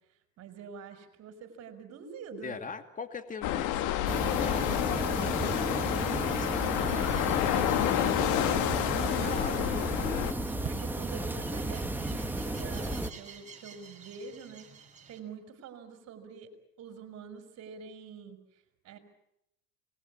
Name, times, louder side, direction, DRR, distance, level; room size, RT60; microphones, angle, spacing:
voice 1, 0.4-2.6 9.0-9.9 10.7-16.5 16.8-18.4 18.8-19.0, right 6 dB, 50° right, 8 dB, 5.2 m, -46 dB
voice 2, 2.4-8.0 9.2-9.6, left 5 dB, 25° left, 9 dB, 2.5 m, -42 dB
sound 1, 3.4-10.3, left 13 dB, 60° left, 2.0 m, -29 dB
sound 2, 3.9-15.2, right 5 dB, 20° right, 5.8 m, -51 dB
sound 3, 4.1-13.1, right 2 dB, 5° right, 1.7 m, -33 dB
26.5 x 20.5 x 8.5 m, 0.80 s
supercardioid pair, 100°, 34 cm